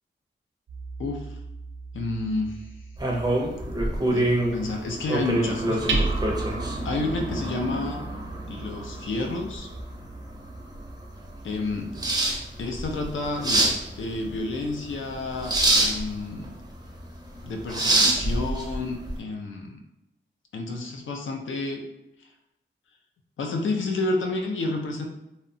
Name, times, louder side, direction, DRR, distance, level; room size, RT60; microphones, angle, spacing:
Hammer, 0.7-12.4, right 3 dB, 75° right, 0.5 m, -36 dB
voice 1, 1.0-1.4 1.9-2.7 4.0-6.0 6.8-8.0 8.5-9.7 11.4-11.9 12.6-16.5 17.4-19.8 20.5-21.8 23.4-25.1, left 2 dB, 85° left, 2 dB, 0.4 m, -30 dB
sound 1, 3.0-19.2, right 1 dB, 20° right, 0.4 m, -27 dB
2.7 x 2.1 x 2.6 m, 0.90 s
wide cardioid pair, 85°, 20 cm